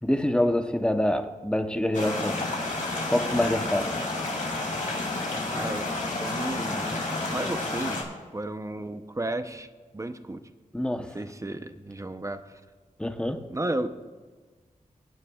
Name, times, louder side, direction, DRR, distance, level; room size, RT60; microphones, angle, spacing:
voice 1, 0.0-2.4 3.1-4.0 10.7-11.1 13.0-13.4, left 1 dB, 5° left, 7 dB, 0.8 m, -26 dB
sound 1, 1.9-8.0, left 2 dB, 65° left, 2.8 m, -30 dB
voice 2, 5.5-5.9 6.2-7.0 7.3-8.0 8.3-9.7 9.9-10.4 11.0-12.6 13.5-13.9, right 2 dB, 20° right, 9 dB, 0.7 m, -33 dB
24.0 x 9.7 x 2.4 m, 1.4 s
wide cardioid pair, 110°, 14 cm